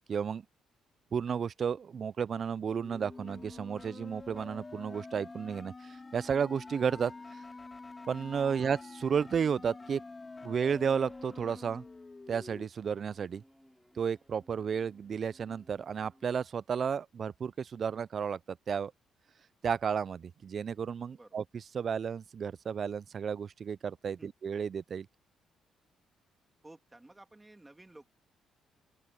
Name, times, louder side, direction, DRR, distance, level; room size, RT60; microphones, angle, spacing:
voice 1, 0.1-0.4 1.1-7.4 8.1-10.0 10.4-11.8 12.3-13.4 14.0-18.9 19.6-25.1, right 7 dB, 50° right, 0.4 m, -33 dB
sound 1, 2.7-12.7, left 3 dB, 25° left, 2.4 m, -47 dB
sound 2, 10.9-11.8 12.7-16.4, equal, ahead, 5.1 m, -60 dB
voice 2, 26.6-28.1, right 2 dB, 15° right, 2.7 m, -54 dB
open air
cardioid pair, 90°, 0 cm